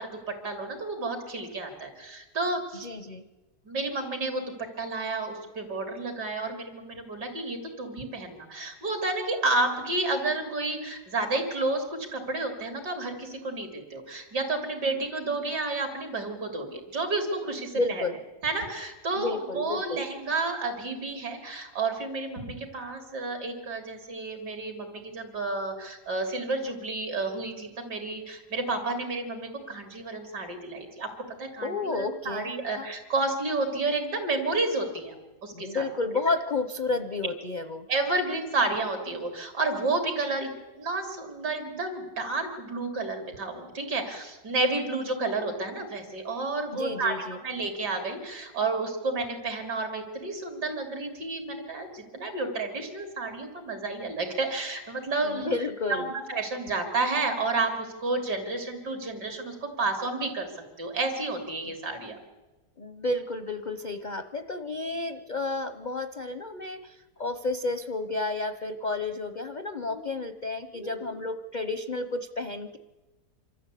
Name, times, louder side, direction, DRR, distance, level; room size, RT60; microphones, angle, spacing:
voice 1, 0.0-2.9 3.7-18.0 18.4-31.1 31.4-35.2 35.4-35.8 37.9-40.5 40.8-47.2 47.4-55.5 55.9-60.5 60.8-62.2 69.9-70.1 70.7-71.0, right 3 dB, 75° right, 5 dB, 3.7 m, -31 dB
voice 2, 2.8-3.2 17.7-18.2 19.2-20.0 31.6-32.9 35.5-37.9 46.7-47.4 55.2-56.1 61.6-61.7 62.8-72.8, left 3 dB, 45° left, 10 dB, 0.6 m, -31 dB
25.5 x 13.5 x 8.3 m, 1.1 s
omnidirectional pair, 1.8 m